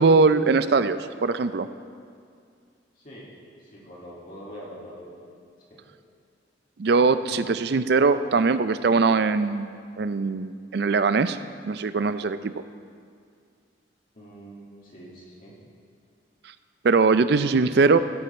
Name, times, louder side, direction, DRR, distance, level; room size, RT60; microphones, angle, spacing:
voice 1, 0.0-1.7 6.8-9.7 10.0-11.4 11.6-12.5 16.8-18.0, right 4 dB, 55° right, 12 dB, 0.4 m, -21 dB
voice 2, 3.0-3.3 3.6-5.1 5.7-5.8 7.3-7.5 14.1-15.6 17.4-18.0, equal, 45° left, -6 dB, 2.2 m, -44 dB
17.5 x 7.7 x 4.3 m, 2.2 s
head